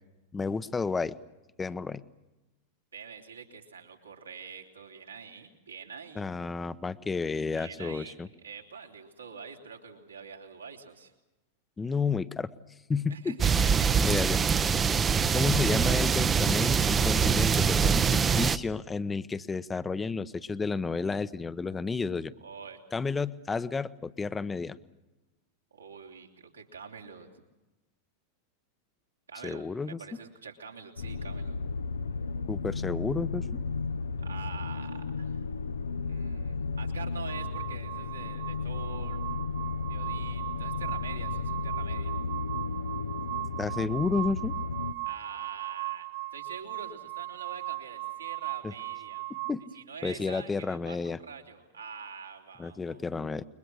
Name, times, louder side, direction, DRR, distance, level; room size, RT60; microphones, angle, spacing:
voice 1, 0.3-1.1 1.6-2.0 6.2-8.3 11.8-12.5 12.9-13.6 14.0-14.7 15.3-22.3 22.9-24.8 29.4-30.0 32.5-33.6 43.6-44.6 48.6-48.7 49.3-49.6 50.0-51.2 52.6-53.4, left 4 dB, 15° left, 16 dB, 0.9 m, -31 dB
voice 2, 2.9-6.2 7.6-11.1 13.1-13.9 22.4-22.8 25.7-27.3 29.3-31.6 34.2-35.4 36.1-39.2 39.9-42.2 45.0-49.2 49.7-53.0, right 5 dB, 75° right, 2 dB, 3.5 m, -45 dB
sound 1, 13.4-18.6, right 6 dB, 20° right, 0.9 m, -24 dB
sound 2, 31.0-44.9, left 4 dB, 70° left, 0.9 m, -34 dB
sound 3, 37.3-49.5, right 20 dB, 55° right, 1.6 m, -38 dB
29.0 x 23.0 x 6.5 m, 1.0 s
figure-of-eight pair, 90°, 0 cm